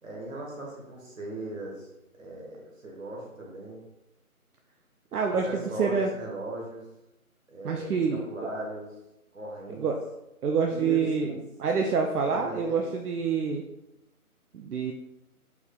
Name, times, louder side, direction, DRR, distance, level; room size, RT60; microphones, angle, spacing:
voice 1, 0.0-1.9 2.2-3.8 5.4-6.8 7.5-8.0 8.2-8.9 9.3-9.9 10.7-11.4 12.3-12.9, right 1 dB, 60° right, -2 dB, 1.4 m, -38 dB
voice 2, 5.1-6.1 7.6-8.2 9.8-10.0 10.4-11.3 11.6-13.6 14.5-14.9, right 5 dB, 85° right, 3 dB, 0.6 m, -27 dB
4.6 x 3.6 x 2.3 m, 0.93 s
figure-of-eight pair, 175°, 44 cm